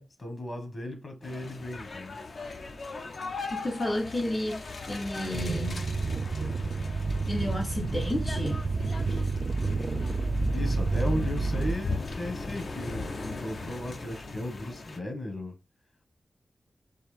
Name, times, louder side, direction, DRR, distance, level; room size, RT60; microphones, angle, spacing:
voice 1, 0.2-2.2 10.5-15.5, left 1 dB, 45° left, 1.7 m, -36 dB
sound 1, 1.2-15.0, left 3 dB, 70° left, 0.8 m, -38 dB
voice 2, 3.5-5.9 7.3-8.7, left 1 dB, 25° left, 0.6 m, -32 dB
sound 2, 5.3-11.8, right 3 dB, 50° right, 0.4 m, -29 dB
4.5 x 2.9 x 3.5 m
wide cardioid pair, 105°, 0 cm